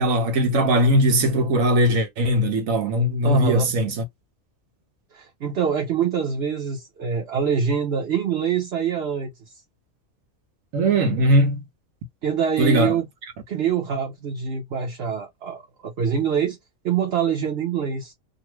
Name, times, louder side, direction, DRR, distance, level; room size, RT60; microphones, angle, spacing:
voice 1, 0.0-4.0 10.7-11.6 12.6-12.9, right 1 dB, 75° right, 1.3 m, -20 dB
voice 2, 3.2-3.8 5.1-9.3 12.2-13.1 13.5-16.6 16.8-18.1, right 7 dB, 55° right, 1.0 m, -25 dB
2.7 x 2.6 x 3.0 m
omnidirectional pair, 1.4 m